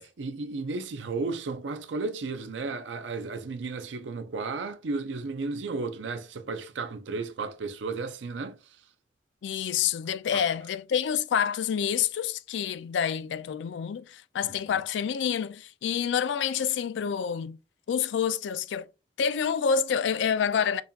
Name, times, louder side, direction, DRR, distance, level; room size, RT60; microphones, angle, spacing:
voice 1, 0.0-8.8 10.3-10.4, right 3 dB, 80° right, 0.5 m, -34 dB
voice 2, 9.4-17.6 17.9-18.9 19.2-20.8, left 7 dB, 75° left, 0.3 m, -28 dB
5.3 x 2.3 x 2.7 m
head